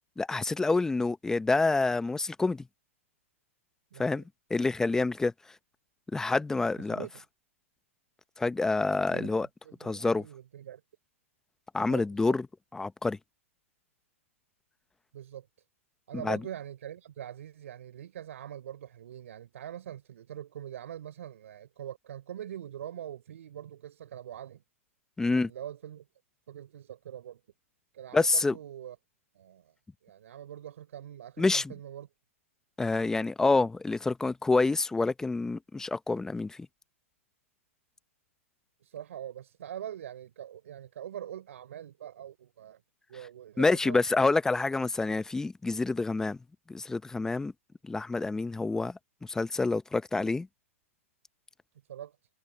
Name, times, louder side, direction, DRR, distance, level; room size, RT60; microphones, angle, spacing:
voice 1, 0.2-2.7 4.0-4.2 4.5-5.3 6.1-7.0 8.4-9.5 9.8-10.2 11.7-12.5 12.7-13.2 16.2-16.4 25.2-25.5 28.1-28.6 31.4-31.7 32.8-36.6 43.6-46.4 46.7-47.5 47.8-50.5, left 3 dB, 5° left, 0.8 m, -27 dB
voice 2, 3.9-4.2 6.9-7.1 9.1-9.4 9.6-10.8 11.9-12.4 15.1-15.5 16.1-24.6 25.2-26.0 26.5-27.4 27.9-29.0 29.3-29.7 30.0-32.1 38.8-42.8 43.1-44.4 51.9-52.2, right 10 dB, 70° right, 4.6 m, -43 dB
hypercardioid pair, 130°, 8 cm